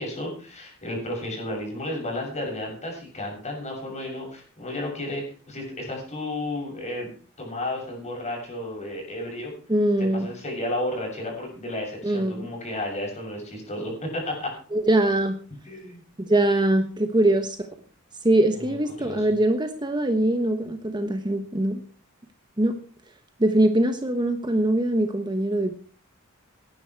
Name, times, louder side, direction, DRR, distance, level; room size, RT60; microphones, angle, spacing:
voice 1, 0.0-7.1 7.4-9.5 10.0-14.5 15.6-16.0 18.6-19.3, left 1 dB, 35° left, 0 dB, 6.8 m, -32 dB
voice 2, 9.7-10.3 12.0-12.5 14.7-15.4 16.2-17.7 18.2-21.8 22.6-22.7 23.4-25.8, right 1 dB, 20° right, 7 dB, 1.1 m, -22 dB
18.5 x 10.5 x 4.6 m, 0.42 s
head